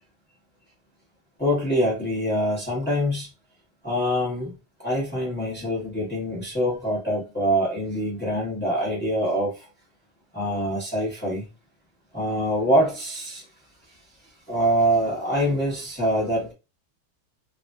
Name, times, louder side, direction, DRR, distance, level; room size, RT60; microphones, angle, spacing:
voice 1, 1.4-3.3 3.8-9.7 10.3-11.5 12.1-13.4 14.5-16.5, equal, 15° left, 0.4 m, -25 dB
3.3 x 2.5 x 2.3 m
omnidirectional pair, 2.3 m